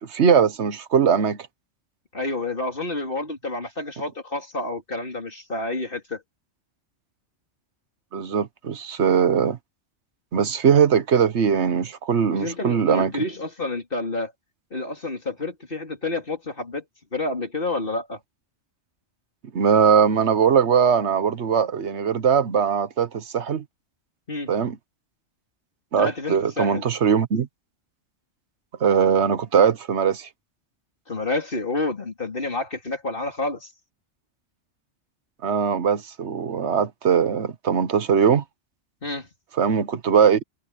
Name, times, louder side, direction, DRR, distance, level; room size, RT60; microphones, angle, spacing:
voice 1, 0.0-1.4 8.1-9.6 10.3-13.1 19.5-23.6 24.5-24.8 25.9-27.5 28.8-30.3 35.4-38.4 39.6-40.4, right 7 dB, 65° right, 1.4 m, -20 dB
voice 2, 2.1-6.2 12.3-14.3 14.7-16.8 17.1-18.2 24.3-24.5 26.0-26.8 31.1-33.7 39.0-39.3, left 2 dB, 45° left, 3.7 m, -29 dB
omnidirectional pair, 1.3 m